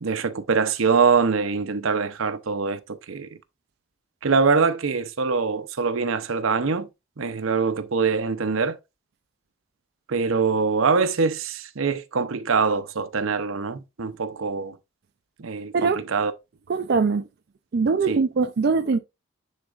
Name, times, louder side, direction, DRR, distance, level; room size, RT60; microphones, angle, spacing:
voice 1, 0.0-2.8 3.1-3.3 4.2-6.9 7.2-8.8 10.1-14.7 15.4-16.3 18.1-18.2, right 5 dB, 85° right, 0.7 m, -23 dB
voice 2, 16.7-17.3 17.7-19.0, right 4 dB, 55° right, 0.4 m, -22 dB
9.7 x 4.0 x 2.4 m
head